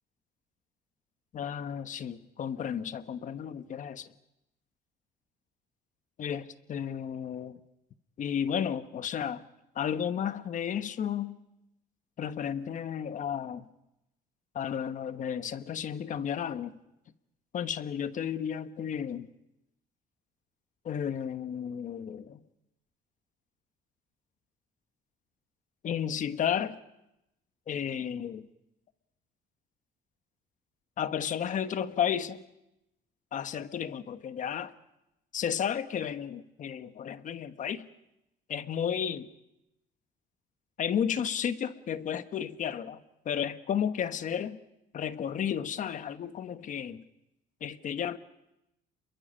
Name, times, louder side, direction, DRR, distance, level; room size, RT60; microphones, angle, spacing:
voice 1, 1.3-4.1 6.2-7.6 8.2-9.4 9.7-11.4 12.2-13.7 14.5-16.8 17.5-19.3 20.8-22.4 25.8-26.8 27.7-28.5 31.0-32.4 33.3-34.7 35.3-37.9 38.5-39.3 40.8-43.0 43.2-44.6 44.9-47.0 47.6-48.2, left 8 dB, 50° left, 1.2 m, -33 dB
29.0 x 22.0 x 5.6 m
cardioid pair, 110°, 17 cm